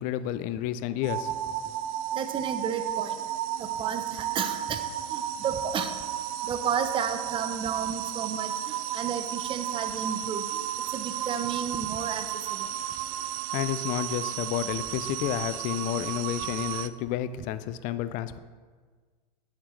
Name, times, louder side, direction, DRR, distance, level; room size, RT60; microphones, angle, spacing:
voice 1, 0.0-1.3 13.5-18.4, left 12 dB, 40° left, 13 dB, 0.4 m, -30 dB
sound 1, 1.0-16.9, right 12 dB, 60° right, 0.4 m, -33 dB
voice 2, 2.1-3.2 3.6-4.8 5.1-5.9 6.4-10.4 10.9-12.7, right 7 dB, 25° right, 9 dB, 0.7 m, -32 dB
9.0 x 7.4 x 3.2 m, 1.5 s
hypercardioid pair, 120°, 20 cm